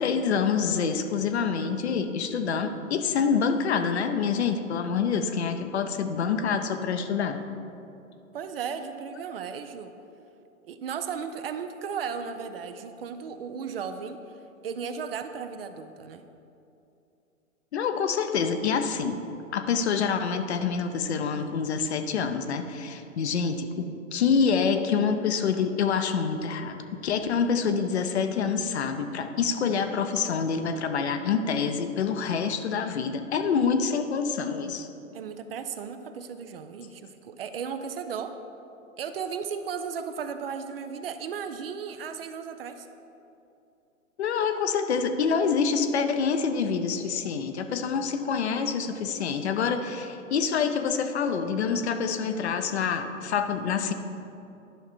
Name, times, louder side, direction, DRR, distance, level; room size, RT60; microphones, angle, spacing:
voice 1, 0.0-7.4 17.7-19.3 19.5-34.9 44.2-53.9, left 6 dB, 55° left, 8 dB, 0.8 m, -26 dB
voice 2, 8.3-9.9 10.6-14.2 14.6-16.2 35.1-38.3 39.0-42.9, right 6 dB, 45° right, 9 dB, 0.6 m, -35 dB
11.0 x 5.9 x 4.3 m, 2.7 s
figure-of-eight pair, 115°, 40 cm